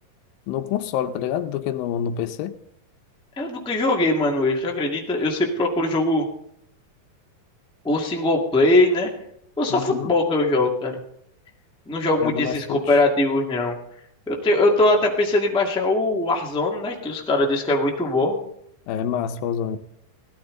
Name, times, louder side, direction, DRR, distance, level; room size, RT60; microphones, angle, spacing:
voice 1, 0.5-2.6 9.7-10.1 12.2-12.8 18.9-19.8, left 9 dB, 85° left, 2.5 m, -27 dB
voice 2, 3.4-6.2 7.8-9.1 9.6-11.0 11.9-13.7 14.3-18.3, left 2 dB, 5° left, 0.9 m, -21 dB
17.5 x 13.0 x 3.8 m
omnidirectional pair, 4.1 m